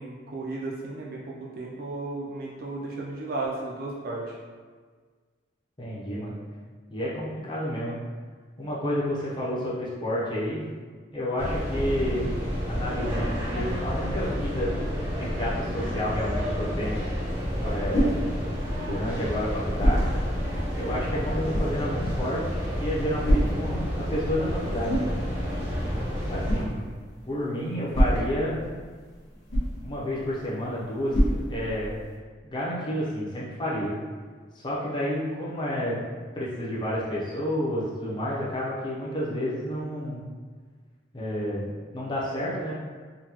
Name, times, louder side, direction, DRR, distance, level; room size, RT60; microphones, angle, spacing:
voice 1, 0.0-4.3, right 2 dB, 50° right, -4 dB, 0.4 m, -34 dB
voice 2, 5.8-6.3 6.9-8.0 8.6-10.6 11.1-12.3 12.7-14.7 15.2-17.0 17.6-18.1 18.8-20.2 20.7-25.0 26.3-26.9 27.3-28.6 29.8-31.9 32.4-34.0 34.5-36.0 36.3-40.2 41.1-42.8, equal, 25° left, -7 dB, 0.7 m, -30 dB
sound 1, 11.4-26.6, equal, 10° right, 0.7 m, -30 dB
sound 2, 17.3-32.2, equal, 65° left, 0.9 m, -30 dB
3.8 x 2.2 x 2.9 m, 1.5 s
head